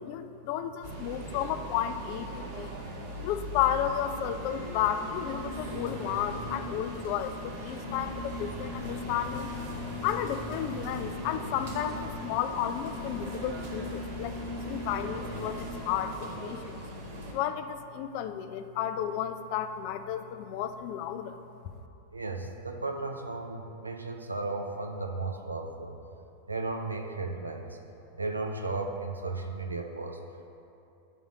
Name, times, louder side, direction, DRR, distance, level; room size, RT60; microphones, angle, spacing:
voice 1, 0.0-2.7 3.2-9.5 10.0-16.8 17.3-21.4, left 9 dB, 45° left, 10 dB, 0.3 m, -32 dB
sound 1, 0.8-17.3, equal, 55° right, 1.5 m, -38 dB
voice 2, 22.1-26.0 26.5-27.8 28.2-30.2, right 3 dB, 80° right, 4 dB, 0.6 m, -35 dB
9.3 x 4.0 x 4.9 m, 2.7 s
figure-of-eight pair, 90°, 0 cm